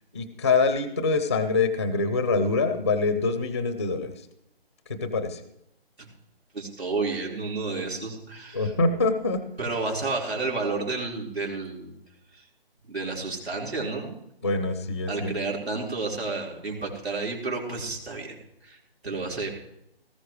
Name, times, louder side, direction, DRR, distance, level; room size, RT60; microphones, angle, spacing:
voice 1, 0.1-4.1 4.9-5.4 8.5-9.4 14.4-15.4, left 3 dB, 15° left, 10 dB, 0.5 m, -25 dB
voice 2, 6.5-8.7 9.6-11.9 12.3-12.4 12.9-14.1 15.1-18.4 18.6-19.5, right 3 dB, 85° right, -2 dB, 4.8 m, -31 dB
19.0 x 15.5 x 3.3 m, 0.80 s
figure-of-eight pair, 155°, 31 cm